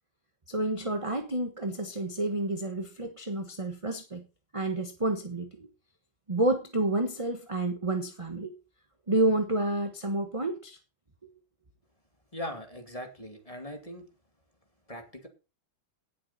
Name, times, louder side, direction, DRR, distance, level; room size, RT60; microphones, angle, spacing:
voice 1, 0.5-4.2 4.5-5.7 6.3-8.5 9.1-10.8, right 2 dB, 20° right, 5 dB, 1.0 m, -29 dB
voice 2, 12.3-14.1 14.9-15.3, left 1 dB, 15° left, 4 dB, 2.5 m, -40 dB
18.0 x 7.3 x 4.2 m, 0.32 s
omnidirectional pair, 2.3 m